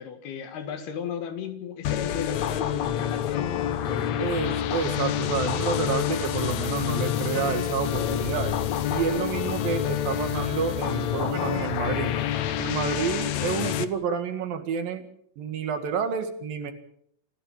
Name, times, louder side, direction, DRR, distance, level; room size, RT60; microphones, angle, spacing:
voice 1, 0.0-4.2, left 7 dB, 70° left, 3.6 m, -35 dB
sound 1, 1.8-13.8, left 11 dB, 90° left, 1.5 m, -28 dB
sound 2, 2.2-13.3, right 1 dB, 90° right, 9.4 m, -45 dB
voice 2, 4.2-8.6 8.9-12.1 12.6-15.1 15.4-16.7, right 6 dB, 60° right, 3.5 m, -29 dB
27.5 x 15.0 x 7.5 m
omnidirectional pair, 4.8 m